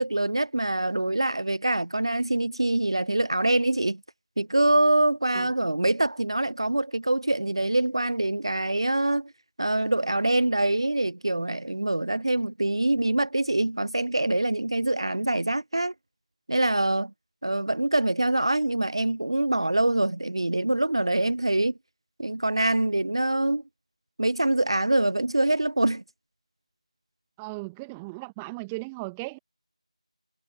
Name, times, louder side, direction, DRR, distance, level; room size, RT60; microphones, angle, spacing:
voice 1, 0.0-4.0 4.4-9.3 9.6-15.9 16.5-17.1 17.4-21.7 22.2-23.6 24.2-26.0, right 2 dB, 45° right, 0.4 m, -24 dB
voice 2, 27.4-29.4, right 26 dB, 5° right, 1.3 m, -37 dB
figure-of-eight pair, 170°, 4 cm